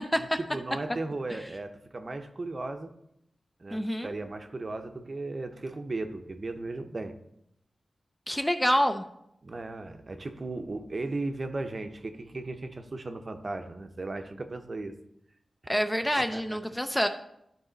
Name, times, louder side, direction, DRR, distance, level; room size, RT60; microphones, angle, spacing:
voice 1, 0.2-2.9 3.6-7.2 9.4-14.9 16.2-16.4, right 2 dB, 40° right, 7 dB, 0.7 m, -36 dB
voice 2, 3.7-4.1 8.3-9.0 15.7-17.1, equal, 10° left, 7 dB, 0.4 m, -27 dB
11.5 x 4.0 x 4.0 m, 0.77 s
wide cardioid pair, 105°, 0 cm